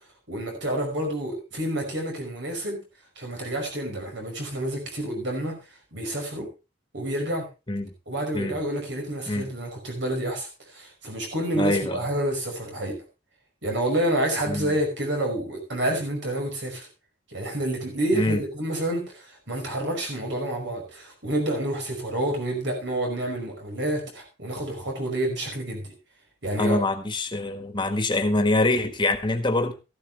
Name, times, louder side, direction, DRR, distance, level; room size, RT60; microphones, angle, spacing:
voice 1, 0.3-2.8 3.2-5.6 5.9-6.5 6.9-7.5 8.1-13.0 13.6-16.9 17.3-25.9 26.4-26.8, right 1 dB, 70° right, 2 dB, 5.5 m, -28 dB
voice 2, 11.6-12.0 14.4-14.8 18.1-18.4 26.6-29.7, left 2 dB, 25° left, 7 dB, 1.6 m, -24 dB
14.0 x 12.0 x 3.3 m, 0.29 s
head